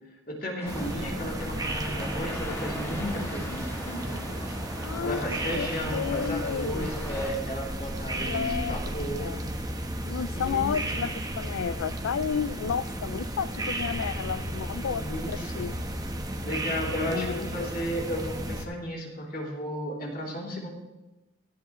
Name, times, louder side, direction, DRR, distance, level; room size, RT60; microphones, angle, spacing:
voice 1, 0.3-9.4 10.3-11.0 14.8-15.7 16.4-20.7, equal, 45° left, -2 dB, 3.1 m, -34 dB
sound 1, 0.6-7.3, left 1 dB, 15° left, 2.1 m, -40 dB
sound 2, 0.7-18.6, right 1 dB, 20° right, 1.0 m, -34 dB
voice 2, 4.8-5.3 5.5-6.9 8.2-9.4 10.0-15.7 17.0-17.7, left 7 dB, 85° left, 17 dB, 0.4 m, -32 dB
18.0 x 13.0 x 3.1 m, 1.0 s
head